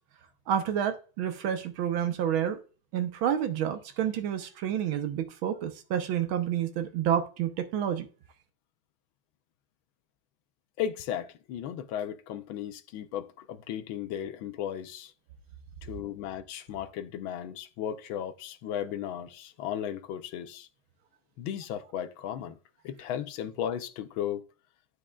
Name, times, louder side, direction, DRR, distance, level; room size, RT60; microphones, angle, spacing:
voice 1, 0.5-2.6 2.9-8.1, right 9 dB, 80° right, 1.7 m, -29 dB
voice 2, 10.8-15.1 15.8-20.7 21.4-22.6 22.8-24.4, left 10 dB, 75° left, 1.4 m, -35 dB
12.5 x 4.9 x 2.3 m
omnidirectional pair, 2.3 m